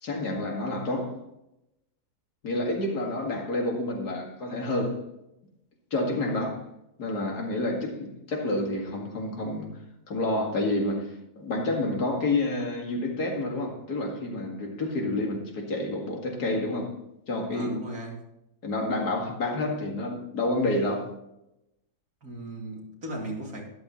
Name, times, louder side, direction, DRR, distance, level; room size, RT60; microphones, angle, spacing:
voice 1, 0.0-1.2 2.4-5.0 5.9-6.6 7.0-9.8 10.1-16.9 17.3-17.7 18.6-21.1, left 2 dB, 80° left, 2.6 m, -29 dB
voice 2, 17.5-18.2 22.2-23.7, right 1 dB, 65° right, 3.0 m, -36 dB
12.5 x 12.0 x 3.1 m
omnidirectional pair, 1.7 m